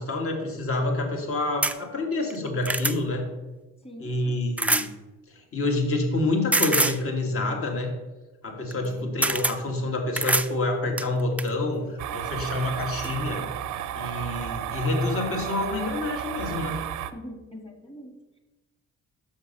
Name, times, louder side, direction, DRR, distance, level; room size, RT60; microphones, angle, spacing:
voice 1, 0.0-3.3 4.0-4.9 5.3-7.9 8.4-13.5 14.0-16.8, left 2 dB, 45° left, 2 dB, 1.8 m, -27 dB
sound 1, 1.6-1.8 2.3-3.0 4.6-4.9 6.5-7.0 8.7-8.9 9.2-9.6 10.2-10.5 11.0-11.5 12.5-12.7 13.0-13.1, right 2 dB, 5° right, 0.4 m, -24 dB
voice 2, 3.8-4.1 8.8-9.2 17.1-18.4, equal, 20° left, 4 dB, 1.7 m, -43 dB
sound 2, 12.0-17.1, right 10 dB, 80° right, 0.6 m, -33 dB
6.6 x 6.3 x 5.3 m, 1.1 s
cardioid pair, 90°, 30 cm